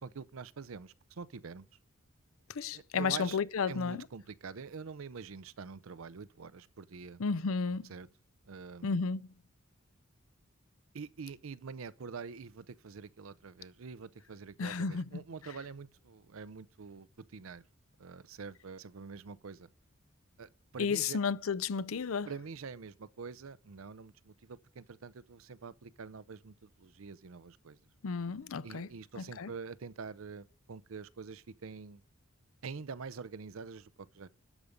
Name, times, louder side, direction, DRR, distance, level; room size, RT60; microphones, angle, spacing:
voice 1, 0.0-1.7 2.7-3.4 3.7-7.2 7.9-8.1 8.5-9.1 10.9-17.1 17.3-17.6 18.0-19.7 20.4-21.2 22.3-27.8 28.6-32.0 32.6-34.3, right 5 dB, 85° right, 0.6 m, -46 dB
voice 2, 2.5-4.0 7.2-7.9 8.8-9.3 14.6-15.2 20.8-22.3 28.0-28.9 29.2-29.5, left 5 dB, 90° left, 0.6 m, -33 dB
12.5 x 5.1 x 8.0 m
head